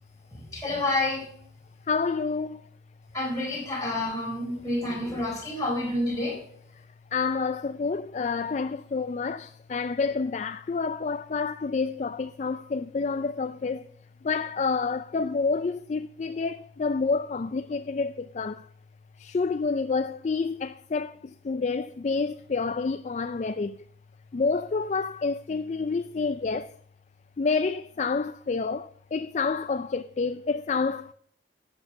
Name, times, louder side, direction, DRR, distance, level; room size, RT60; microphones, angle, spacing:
voice 1, 0.3-1.3 3.1-6.4, left 2 dB, 20° left, 4.3 m, -29 dB
voice 2, 1.9-2.7 7.1-13.9 14.2-18.7 19.2-23.8 24.3-26.7 27.4-31.1, left 4 dB, 40° left, 0.3 m, -28 dB
11.0 x 7.9 x 6.5 m
head